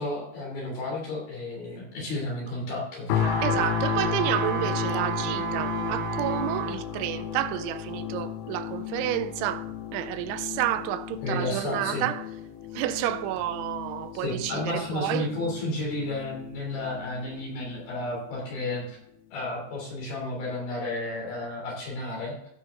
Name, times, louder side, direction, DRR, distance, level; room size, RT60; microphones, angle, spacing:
voice 1, 0.0-3.2 11.2-12.1 14.1-19.0 19.3-22.5, left 2 dB, 55° left, 4.8 m, -32 dB
sound 1, 3.1-18.1 18.6-18.8, left 9 dB, 75° left, 2.7 m, -33 dB
sound 2, 3.1-6.8 7.3-7.4, right 7 dB, 60° right, 3.0 m, -32 dB
voice 2, 3.4-12.3 12.7-15.3, right 12 dB, 85° right, 3.0 m, -30 dB
16.0 x 6.6 x 3.7 m
omnidirectional pair, 5.3 m